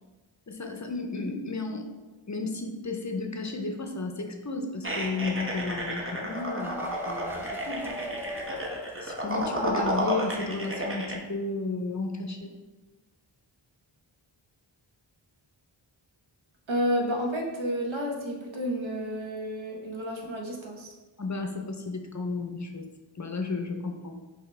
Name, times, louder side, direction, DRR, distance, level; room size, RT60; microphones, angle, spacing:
voice 1, 0.5-1.9 2.3-7.9 9.0-12.5 21.2-22.9 23.2-24.1, left 3 dB, 35° left, 4 dB, 0.6 m, -33 dB
sound 1, 4.8-11.2, right 1 dB, 25° right, 0.8 m, -32 dB
sound 2, 6.0-9.6 9.9-10.0 10.3-10.4, equal, 5° right, 0.4 m, -38 dB
voice 2, 16.7-20.9, equal, 65° right, 0 dB, 1.0 m, -30 dB
5.7 x 2.9 x 3.2 m, 1.2 s
wide cardioid pair, 40°, 49 cm